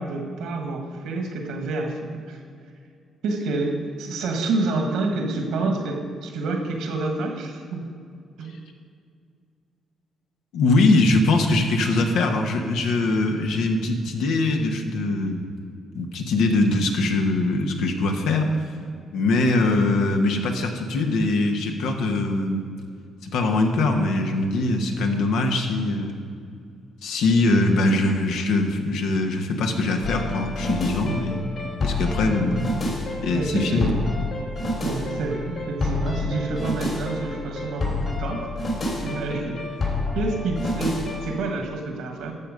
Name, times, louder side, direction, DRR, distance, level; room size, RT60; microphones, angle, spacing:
voice 1, 0.0-2.4 3.2-7.9 8.4-8.6 32.2-32.6 33.3-34.2 34.8-38.7 39.0-39.9 40.1-42.3, right 3 dB, 85° right, 4 dB, 1.7 m, -28 dB
voice 2, 10.5-15.4 15.9-18.5 19.1-22.6 23.3-26.1 27.0-31.4 31.8-32.7 33.2-33.9, left 2 dB, 85° left, 4 dB, 1.3 m, -22 dB
sound 1, 30.0-41.3, left 2 dB, 55° left, 3.1 m, -29 dB
12.5 x 7.1 x 5.1 m, 2.3 s
cardioid pair, 90°, 0 cm